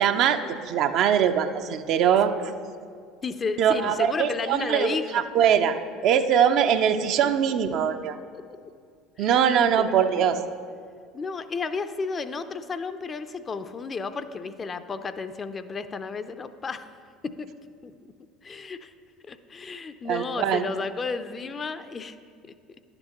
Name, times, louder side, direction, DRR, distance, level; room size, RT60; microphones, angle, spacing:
voice 1, 0.0-2.3 3.6-5.8 6.0-8.2 9.2-10.4 20.1-20.6, right 8 dB, 55° right, 8 dB, 0.5 m, -22 dB
voice 2, 3.2-5.3 8.3-8.4 9.2-9.3 9.8-10.4 11.1-16.9 17.2-17.5 17.8-17.9 18.4-18.9 19.2-22.2, left 4 dB, 30° left, 11 dB, 0.4 m, -33 dB
10.5 x 7.8 x 2.9 m, 2.2 s
hypercardioid pair, 70°, 0 cm